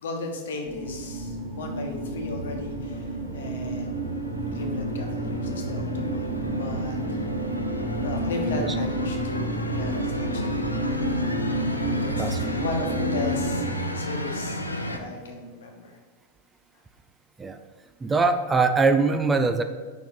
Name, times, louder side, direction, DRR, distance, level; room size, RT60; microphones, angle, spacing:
voice 1, 0.0-4.0 4.5-6.3 6.6-7.3 8.0-10.6 11.9-16.0, left 2 dB, 60° left, 3 dB, 1.1 m, -36 dB
sound 1, 0.7-13.7, right 1 dB, 50° right, 1.7 m, -30 dB
sound 2, 0.8-15.0, left 1 dB, 85° left, 0.6 m, -34 dB
voice 2, 18.0-19.6, right 4 dB, 15° right, 7 dB, 0.4 m, -22 dB
5.5 x 4.5 x 6.2 m, 1.5 s
figure-of-eight pair, 90°, 0 cm